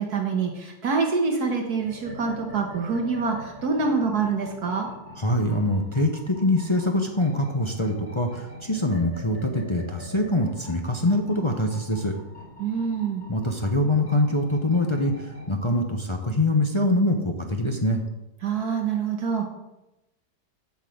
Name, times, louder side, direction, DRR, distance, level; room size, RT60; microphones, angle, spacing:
voice 1, 0.0-4.9 12.6-13.2 18.4-19.5, right 5 dB, 65° right, 2 dB, 1.7 m, -26 dB
sound 1, 1.8-15.6, left 1 dB, 5° right, 3.3 m, -44 dB
voice 2, 5.2-12.1 13.3-18.0, left 1 dB, 25° left, 2 dB, 0.6 m, -24 dB
8.1 x 5.9 x 7.9 m, 0.96 s
omnidirectional pair, 1.9 m